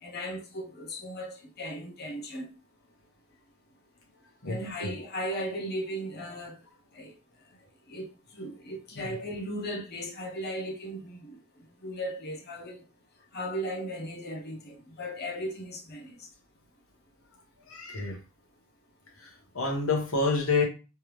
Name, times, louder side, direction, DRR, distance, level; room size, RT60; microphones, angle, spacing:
voice 1, 0.0-2.5 4.5-6.6 6.9-7.2 7.9-12.8 13.3-16.3, equal, 50° left, 0.9 m, -37 dB
voice 2, 4.4-4.9 9.0-9.1 17.7-18.2 19.2-20.6, left 3 dB, 80° left, 1.2 m, -28 dB
3.3 x 3.3 x 3.1 m
head